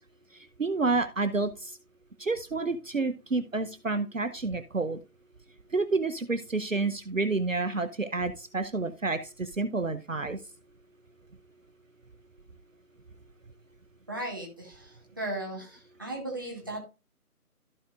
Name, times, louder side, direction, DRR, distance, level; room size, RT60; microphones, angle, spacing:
voice 1, 0.6-1.7 2.2-5.0 5.7-10.4, right 3 dB, 60° right, 11 dB, 0.8 m, -29 dB
voice 2, 14.1-16.8, right 1 dB, 15° right, -1 dB, 1.3 m, -36 dB
14.5 x 5.1 x 2.4 m, 0.30 s
figure-of-eight pair, 160°, 45 cm